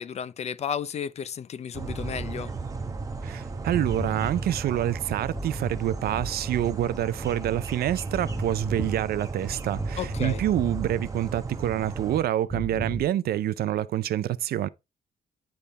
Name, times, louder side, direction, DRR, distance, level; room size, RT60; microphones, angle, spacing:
voice 1, 0.0-2.5 10.0-10.4, left 8 dB, 40° left, 0.4 m, -33 dB
sound 1, 1.7-12.2, right 3 dB, 20° right, 0.9 m, -35 dB
sound 2, 2.0-2.2 3.7-4.7 5.3-6.6 8.1-9.2 9.7-11.0 12.5-13.0, right 1 dB, 5° right, 1.1 m, -34 dB
voice 2, 3.2-14.7, right 12 dB, 65° right, 0.5 m, -27 dB
10.0 x 3.5 x 4.0 m
wide cardioid pair, 180°, 17 cm